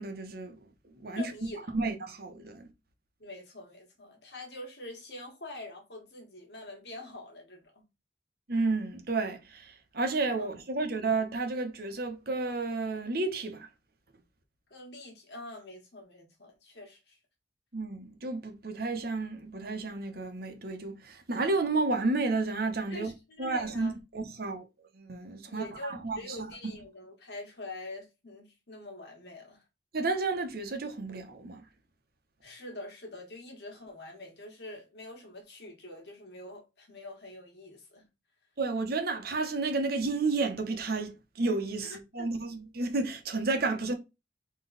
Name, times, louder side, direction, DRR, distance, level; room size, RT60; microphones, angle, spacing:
voice 1, 0.0-1.3 1.7-2.7 8.5-13.7 17.7-23.1 23.4-24.6 24.9-26.7 29.9-31.7 38.6-43.9, right 3 dB, 60° right, 1.0 m, -32 dB
voice 2, 1.1-1.6 3.2-7.8 10.4-10.5 14.7-17.2 22.9-23.9 25.5-29.6 32.4-38.0 41.8-41.9 42.2-42.3, left 2 dB, 70° left, 1.6 m, -45 dB
4.0 x 3.1 x 3.9 m
head